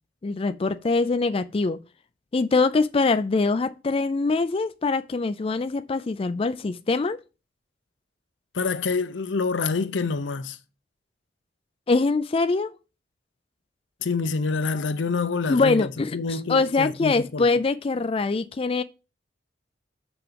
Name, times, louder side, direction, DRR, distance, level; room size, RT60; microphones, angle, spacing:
voice 1, 0.2-1.8 2.3-7.2 11.9-12.7 15.5-18.8, left 3 dB, 30° left, 0.4 m, -23 dB
voice 2, 8.5-10.6 14.0-17.5, left 4 dB, 85° left, 0.7 m, -27 dB
6.0 x 5.8 x 5.1 m
head